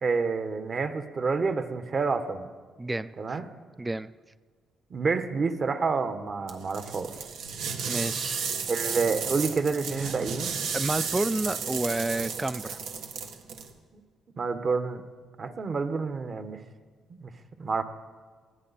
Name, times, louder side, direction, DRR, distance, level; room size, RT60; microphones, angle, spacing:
voice 1, 0.0-2.5 3.2-3.5 4.9-7.1 8.7-10.6 14.4-15.0 15.4-16.6 17.2-17.3 17.6-17.8, right 4 dB, 45° right, 8 dB, 1.3 m, -28 dB
voice 2, 2.8-3.4 3.8-4.1 7.9-8.4 10.0-10.1 10.7-12.8, right 2 dB, 15° right, 15 dB, 0.4 m, -30 dB
sound 1, 6.5-13.7, right 6 dB, 80° right, 1.5 m, -33 dB
20.0 x 14.5 x 4.3 m, 1.5 s
cardioid pair, 90°, 0 cm